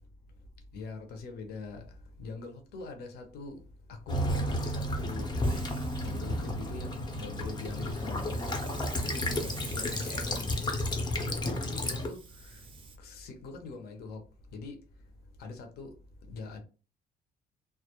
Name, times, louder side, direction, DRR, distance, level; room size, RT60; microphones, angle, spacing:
voice 1, 0.7-1.8 2.2-3.6 4.1-5.4 6.0-8.7 9.0-10.5 11.2-12.2 12.5-12.6 13.0-14.2 14.5-14.8 15.4-15.9 16.3-16.6, left 3 dB, 70° left, 0.7 m, -42 dB
Child speech kid speaking / Bird vocalization bird call bird song / Stream, 4.1-12.1, left 1 dB, 25° left, 0.6 m, -32 dB
Hiss, 5.4-13.0, right 4 dB, 30° right, 0.4 m, -49 dB
2.2 x 2.0 x 2.8 m
cardioid pair, 110°, 17 cm